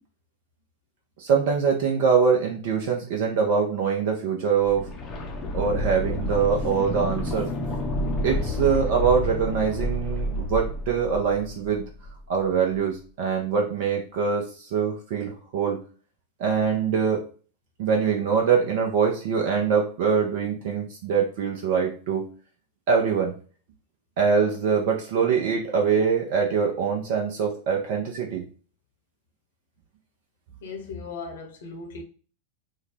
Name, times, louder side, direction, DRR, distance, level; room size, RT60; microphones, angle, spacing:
voice 1, 1.2-4.9 5.5-7.5 8.2-11.8 12.3-14.5 14.7-15.8 16.4-17.2 17.8-22.3 22.9-23.3 24.2-28.4, right 6 dB, 50° right, 0.7 m, -23 dB
sound 1, 4.6-12.5 12.7-12.8, left 1 dB, 30° left, 0.6 m, -30 dB
voice 2, 30.6-32.0, left 4 dB, 60° left, 0.8 m, -37 dB
3.7 x 2.3 x 3.2 m
figure-of-eight pair, 90°, 0 cm